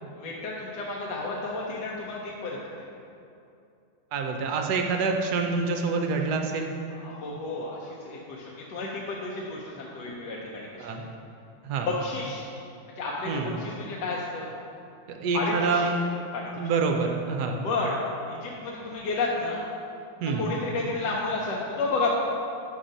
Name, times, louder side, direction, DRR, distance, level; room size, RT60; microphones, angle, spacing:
voice 1, 0.2-2.9 6.9-10.7 11.9-12.5 12.9-14.5 15.3-15.9 16.3-16.5 17.6-18.0 18.3-19.6 20.4-22.2, left 3 dB, 70° left, -4 dB, 1.2 m, -31 dB
voice 2, 4.1-6.7 10.8-11.1 11.6-11.9 13.3-13.5 15.1-16.0 16.6-17.6 20.2-20.4, right 4 dB, 70° right, 3 dB, 1.0 m, -27 dB
5.7 x 5.3 x 5.1 m, 2.6 s
omnidirectional pair, 2.1 m